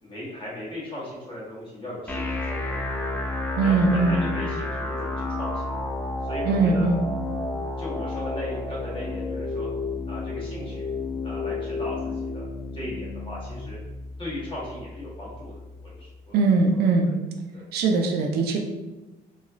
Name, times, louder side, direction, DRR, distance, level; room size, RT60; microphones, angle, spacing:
voice 1, 0.0-3.3 3.6-5.9 6.2-6.9 7.8-9.7 10.1-10.9 11.2-12.5 12.7-13.8 14.2-16.4 16.7-17.2 17.5-17.7, left 1 dB, 30° left, -5 dB, 1.2 m, -37 dB
sound 1, 2.1-16.0, left 2 dB, 10° left, 0.3 m, -31 dB
voice 2, 3.6-4.2 6.4-7.0 16.3-17.1 17.7-18.6, right 3 dB, 70° right, 3 dB, 0.4 m, -21 dB
3.0 x 2.3 x 2.4 m, 1.1 s
cardioid pair, 110°, 17 cm